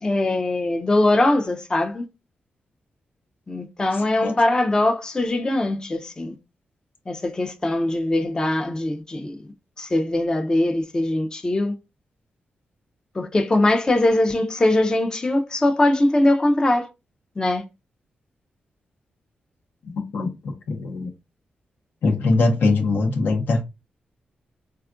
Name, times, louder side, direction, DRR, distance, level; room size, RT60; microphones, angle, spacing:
voice 1, 0.0-2.1 3.5-6.4 7.1-9.4 9.8-11.7 13.2-16.9 17.4-17.6, left 1 dB, 25° left, 0.4 m, -21 dB
voice 2, 19.8-21.1 22.0-23.6, left 3 dB, 75° left, 0.7 m, -22 dB
3.4 x 2.3 x 2.4 m
cardioid pair, 90°, 3 cm